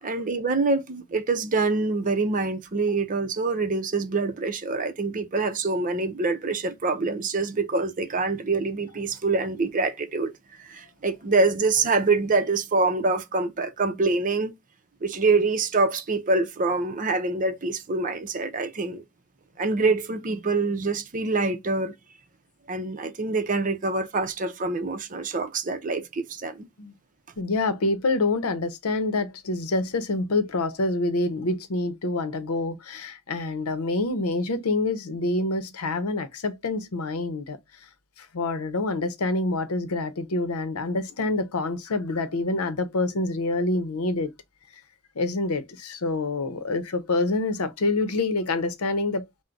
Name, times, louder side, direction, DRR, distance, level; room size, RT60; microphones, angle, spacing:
voice 1, 0.0-10.3 10.6-14.5 15.0-19.0 19.6-21.9 22.7-26.7, right 3 dB, 35° right, 0.6 m, -25 dB
voice 2, 27.4-37.6 38.2-44.3 45.2-49.2, left 2 dB, 90° left, 0.7 m, -26 dB
3.8 x 2.1 x 4.4 m
head